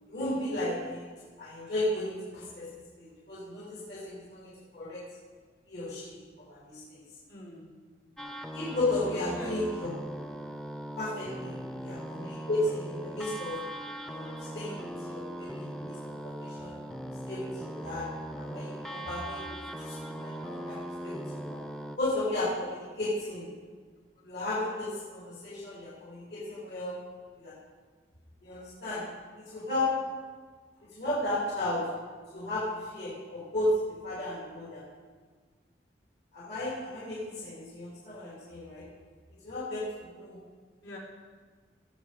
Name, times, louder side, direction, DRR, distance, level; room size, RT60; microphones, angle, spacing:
voice 1, 0.1-1.1 1.4-2.7 3.0-5.0 5.7-7.0 8.5-9.9 11.0-13.7 14.0-16.8 17.3-18.1 18.4-21.6 22.0-23.5 24.2-27.0 27.4-27.5 28.4-29.1 29.4-30.1 30.8-31.9 32.3-34.8 36.3-38.9 39.3-40.4, left 1 dB, 75° left, -7 dB, 3.0 m, -34 dB
voice 2, 7.3-7.7 9.3-9.5 11.7-12.0 21.9-22.0 24.2-24.4 26.8-26.9 40.8-41.0, equal, 90° left, -6 dB, 3.8 m, -46 dB
sound 1, 8.2-22.0, right 1 dB, 5° left, 0.5 m, -39 dB
17.5 x 7.6 x 5.0 m, 1.5 s
head